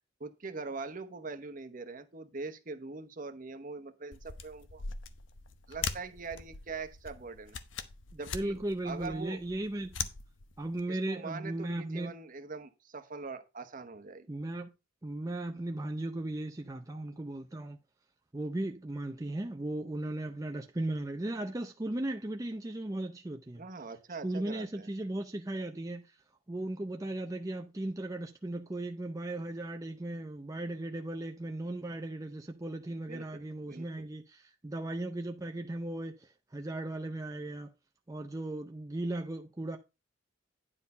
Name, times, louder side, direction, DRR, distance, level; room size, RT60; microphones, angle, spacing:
voice 1, 0.2-4.8 5.7-7.6 8.2-8.6 8.8-9.4 10.9-14.3 23.6-24.9 33.1-34.1, right 4 dB, 45° right, 1.0 m, -42 dB
sound 1, 4.1-10.8, left 6 dB, 85° left, 0.9 m, -42 dB
voice 2, 8.1-10.1 10.6-12.1 14.3-14.7 15.0-17.8 18.3-23.6 24.2-26.2 26.5-37.7 38.1-39.8, right 1 dB, 20° right, 0.5 m, -37 dB
9.9 x 4.3 x 5.5 m
head